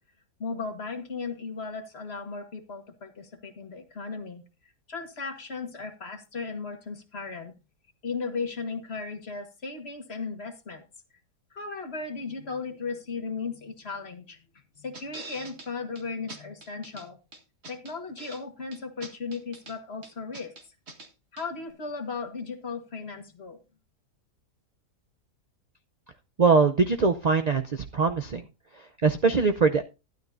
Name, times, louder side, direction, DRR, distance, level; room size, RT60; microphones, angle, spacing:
voice 1, 0.4-4.4 4.9-7.5 8.0-10.8 11.5-14.4 14.8-17.2 17.7-20.5 21.3-23.6, left 4 dB, 40° left, 6 dB, 1.7 m, -36 dB
sound 1, 14.9-15.7 15.9-16.0 16.3-17.0 17.3-18.4 18.7-19.7 20.0-21.1 21.4-21.5, right 3 dB, 40° right, 2.0 m, -43 dB
voice 2, 26.4-28.4 29.0-29.8, right 4 dB, 65° right, 7 dB, 0.4 m, -22 dB
12.5 x 12.0 x 2.6 m, 0.28 s
omnidirectional pair, 1.7 m